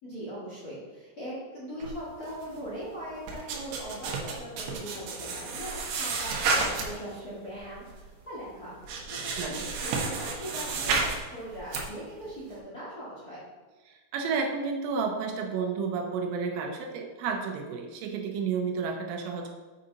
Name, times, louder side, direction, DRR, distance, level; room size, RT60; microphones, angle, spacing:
voice 1, 0.0-13.4, equal, 80° left, -10 dB, 0.8 m, -40 dB
sound 1, 1.8-2.8 3.0-7.2 7.6-8.0 8.4-8.5 8.8-11.2 11.5-11.8, right 4 dB, 70° right, 2.8 m, -31 dB
voice 2, 13.9-19.5, right 5 dB, 85° right, 3 dB, 3.3 m, -31 dB
7.8 x 5.3 x 3.9 m, 1.3 s
omnidirectional pair, 5.5 m